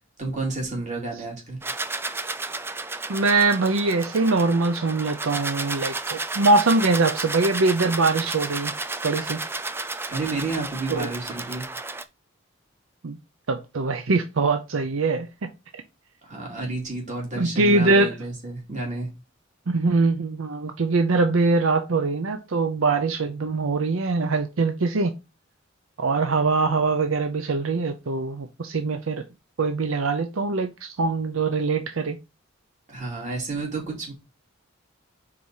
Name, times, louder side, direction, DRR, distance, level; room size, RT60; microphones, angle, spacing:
voice 1, 0.2-1.6 10.1-11.6 16.2-19.1 32.9-34.1, right 3 dB, 35° right, 2.6 m, -30 dB
sound 1, 1.6-12.0, right 3 dB, 10° right, 0.3 m, -32 dB
voice 2, 3.1-8.7 9.0-9.4 10.9-11.1 13.0-13.2 13.5-15.5 17.4-18.1 19.7-25.1 26.0-29.2 29.6-32.2, right 3 dB, 75° right, 0.6 m, -23 dB
4.8 x 4.1 x 5.5 m
head